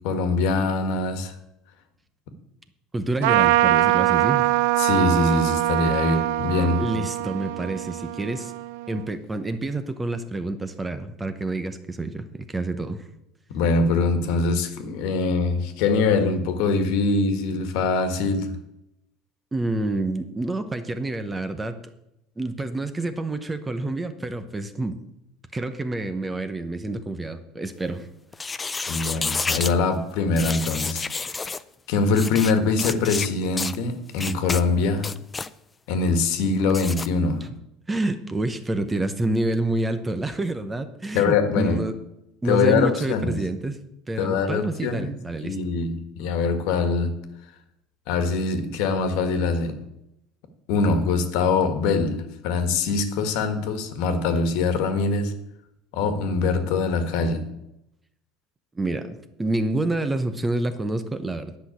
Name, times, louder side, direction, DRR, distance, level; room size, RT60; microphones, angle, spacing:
voice 1, 0.0-1.3 4.8-7.0 13.5-18.5 28.9-31.0 31.9-35.1 35.9-37.5 41.1-41.8 42.4-43.4 44.2-45.1 45.4-47.2 48.1-49.8 50.7-55.3 55.9-57.5, left 4 dB, 70° left, 1.7 m, -23 dB
voice 2, 2.9-4.5 6.7-8.5 8.9-13.0 19.5-21.8 22.4-25.0 25.5-28.1 37.9-42.0 42.4-43.8 44.1-45.6 58.7-61.6, right 2 dB, 10° right, 0.8 m, -28 dB
Trumpet, 3.2-9.0, right 16 dB, 85° right, 0.5 m, -23 dB
sound 1, 28.3-29.7 30.4-31.6 32.1-32.5 32.8-33.3 33.6-33.8 34.2-34.6 35.0-35.5 36.7-37.1, left 4 dB, 15° left, 0.4 m, -29 dB
10.5 x 6.0 x 8.5 m
cardioid pair, 150°, 0 cm